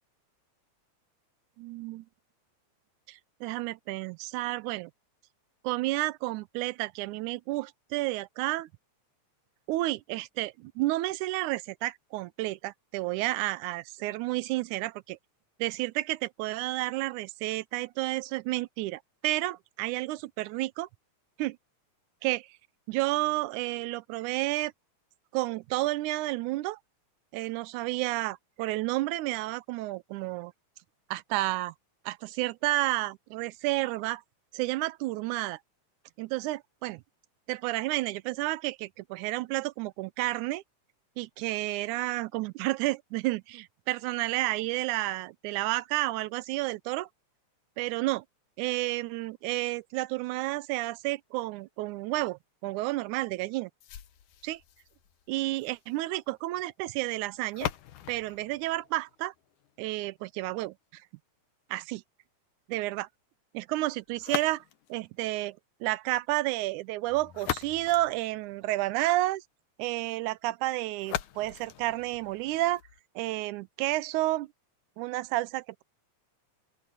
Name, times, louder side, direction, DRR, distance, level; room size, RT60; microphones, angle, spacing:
voice 1, 1.6-2.1 3.1-4.9 5.6-8.7 9.7-15.2 15.6-20.9 21.4-21.6 22.2-22.6 22.9-24.7 25.3-26.8 27.3-30.5 31.1-31.7 32.1-34.2 34.5-35.6 36.2-37.0 37.5-40.6 41.2-47.1 47.8-48.2 48.6-53.7 54.4-54.6 55.3-57.7 58.1-59.3 59.8-61.0 61.7-62.0 62.7-63.1 63.5-64.6 64.9-69.4 69.8-72.8 73.2-74.5 75.0-75.8, right 18 dB, 85° right, 2.0 m, -31 dB
sound 1, 53.8-59.8 64.2-65.0 67.1-69.0 71.0-73.0, left 11 dB, 80° left, 2.6 m, -40 dB
open air
omnidirectional pair, 3.5 m